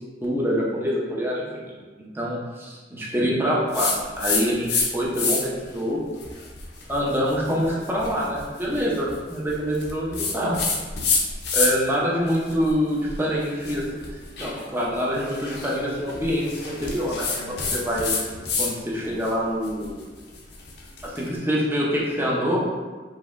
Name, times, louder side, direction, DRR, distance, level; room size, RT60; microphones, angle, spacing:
voice 1, 0.2-1.8 2.1-2.4 2.9-6.0 6.9-10.6 11.5-13.8 14.4-18.1 18.6-20.0 21.0-22.6, equal, 15° right, -5 dB, 0.8 m, -25 dB
sound 1, 3.7-4.9 5.1-5.6 6.2-11.9 12.3-18.7 19.0-21.2, left 4 dB, 70° left, 0.7 m, -28 dB
5.3 x 3.0 x 2.6 m, 1.4 s
head